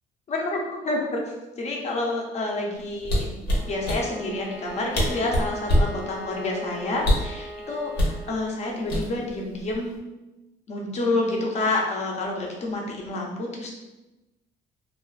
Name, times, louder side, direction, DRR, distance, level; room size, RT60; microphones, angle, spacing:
voice 1, 0.3-1.2 1.6-3.3 3.7-9.9 10.7-13.7, left 2 dB, 40° left, -1 dB, 0.6 m, -28 dB
sound 1, 3.0-4.0 4.7-4.8 4.9-6.0 7.0-7.4 8.0-8.2 8.9-9.4 9.7-10.0, equal, 75° left, 0.7 m, -22 dB
Bowed string instrument, 3.5-8.5, equal, 5° right, 0.7 m, -40 dB
2.4 x 2.2 x 2.3 m, 1.0 s
cardioid pair, 110°, 17 cm